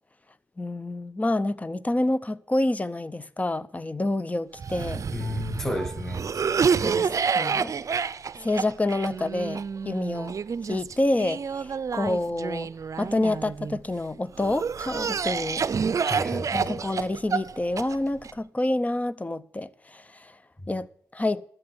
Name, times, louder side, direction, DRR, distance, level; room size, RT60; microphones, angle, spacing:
voice 1, 0.6-5.0 6.8-7.7 8.4-10.3 10.7-12.7 13.0-15.6 16.5-20.3 20.7-20.9 21.1-21.4, left 2 dB, 20° left, 0.7 m, -28 dB
Cough, 4.6-13.8 14.4-18.3, right 6 dB, 55° right, 0.5 m, -29 dB
voice 2, 5.1-6.3 16.0-16.8 20.6-20.7, left 1 dB, 5° left, 1.3 m, -32 dB
13.0 x 7.8 x 7.7 m
cardioid pair, 60°, 7 cm